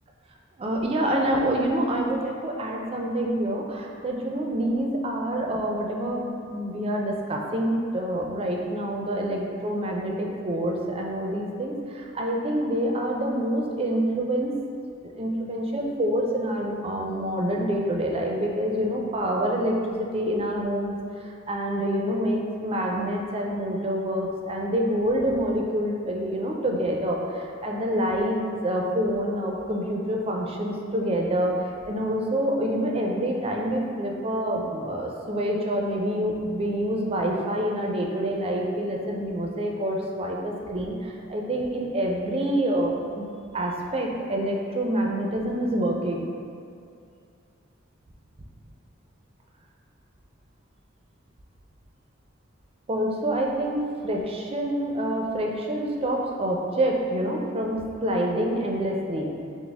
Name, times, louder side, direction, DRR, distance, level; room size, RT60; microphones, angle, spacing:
voice 1, 0.6-14.5 15.1-21.0 21.2-43.2 43.5-46.3 52.9-59.3, right 1 dB, 30° right, 0 dB, 0.4 m, -27 dB
6.0 x 2.0 x 3.4 m, 2.4 s
head